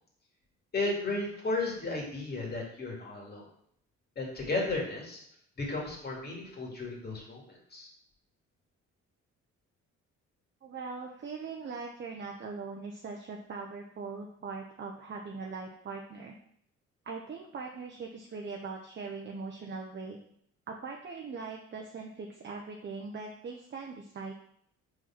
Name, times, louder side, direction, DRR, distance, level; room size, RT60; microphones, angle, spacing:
voice 1, 0.7-3.5 4.2-5.2 5.6-7.4 7.7-7.9, left 2 dB, 30° left, -2 dB, 2.5 m, -34 dB
voice 2, 10.6-16.4 17.0-20.2 20.7-24.3, right 4 dB, 35° right, 1 dB, 0.8 m, -41 dB
4.6 x 4.4 x 5.9 m, 0.68 s
cardioid pair, 90°, 30 cm